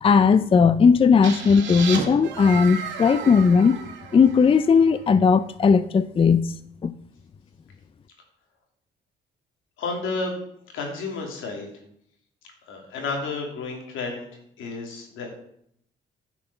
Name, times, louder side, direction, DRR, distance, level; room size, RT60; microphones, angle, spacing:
voice 1, 0.0-3.8 4.1-6.5 6.8-6.9, left 5 dB, 30° left, 14 dB, 0.4 m, -17 dB
sound 1, 1.2-5.0, right 6 dB, 70° right, 2.0 m, -33 dB
voice 2, 9.8-10.4 10.7-11.7 12.7-14.3 14.6-15.3, left 3 dB, 85° left, 1 dB, 2.9 m, -31 dB
11.5 x 5.9 x 5.6 m, 0.70 s
cardioid pair, 90°, 20 cm